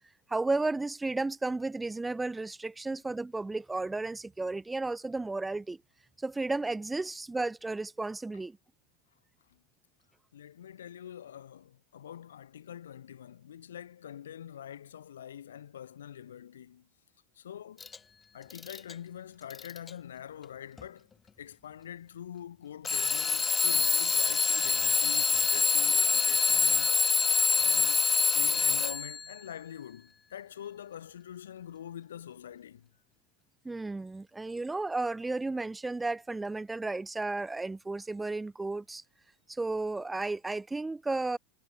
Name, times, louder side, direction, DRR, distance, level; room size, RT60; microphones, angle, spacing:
voice 1, 0.3-5.8 6.2-8.6 33.6-39.0 39.5-41.4, right 3 dB, 10° right, 5.4 m, -33 dB
voice 2, 10.3-16.9 17.4-17.8 18.3-21.1 21.4-27.0 27.6-28.1 28.3-32.9, left 10 dB, 80° left, 6.5 m, -45 dB
Alarm / Clock, 17.8-18.0 18.5-18.9 19.5-19.9 20.8-20.9 22.8-29.2, left 5 dB, 20° left, 4.2 m, -25 dB
hypercardioid pair, 95°, 0 cm